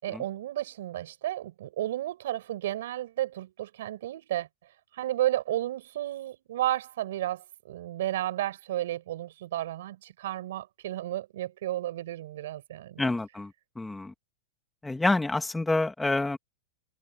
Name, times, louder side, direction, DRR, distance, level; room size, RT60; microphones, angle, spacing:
voice 1, 0.0-4.5 4.9-13.1, right 13 dB, 75° right, 5.1 m, -32 dB
voice 2, 13.0-14.1 14.8-16.4, left 2 dB, 5° left, 2.3 m, -28 dB
supercardioid pair, 150°, 0 cm